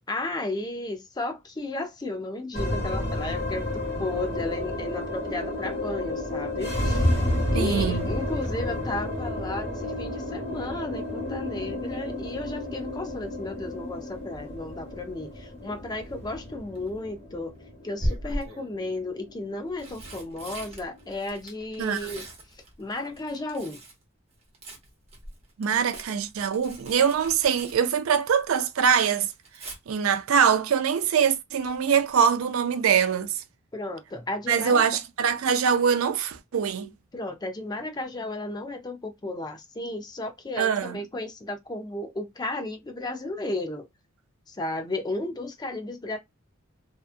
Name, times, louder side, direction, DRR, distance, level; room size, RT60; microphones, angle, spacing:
voice 1, 0.0-7.1 7.5-17.5 17.8-22.3 22.8-23.8 33.7-34.8 37.1-43.9 44.5-46.2, left 2 dB, 20° left, 0.5 m, -34 dB
sound 1, 2.5-21.0, left 1 dB, 50° left, 1.1 m, -31 dB
voice 2, 7.5-8.1 21.8-22.1 25.6-29.3 29.9-33.4 34.5-36.9 40.6-41.0, right 7 dB, 80° right, 0.4 m, -23 dB
Tearing, 16.5-16.9 18.0-18.7 19.5-24.0 24.3-28.6 28.9-29.8 31.6-31.9 32.2-32.3, equal, 30° right, 0.8 m, -38 dB
2.8 x 2.2 x 2.4 m
head